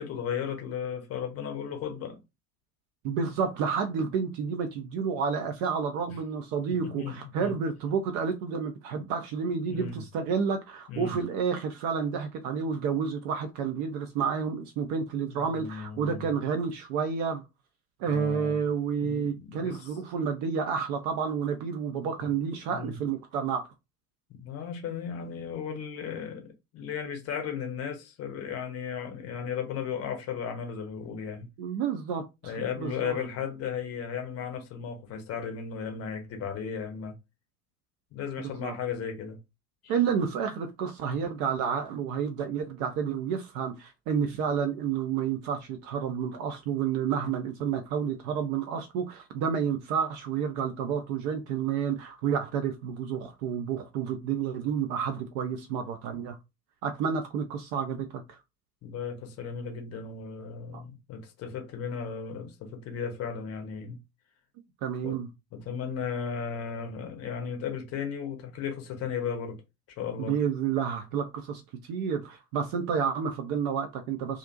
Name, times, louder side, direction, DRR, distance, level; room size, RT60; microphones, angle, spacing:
voice 1, 0.0-2.2 6.7-7.6 9.0-9.1 9.6-10.0 10.9-11.1 15.4-16.3 18.1-18.6 19.0-20.0 22.7-23.0 24.3-31.5 32.4-37.1 38.1-39.4 39.8-39.9 58.8-64.0 65.0-65.2 65.5-69.6 69.9-70.4, left 7 dB, 30° left, 0.7 m, -35 dB
voice 2, 3.0-17.4 18.0-23.7 31.6-33.2 38.4-38.7 39.9-56.4 56.8-58.4 60.7-60.8 64.8-65.3 70.2-71.6 71.9-74.4, right 6 dB, 40° right, 0.4 m, -30 dB
2.5 x 2.0 x 2.6 m
figure-of-eight pair, 70°, 46 cm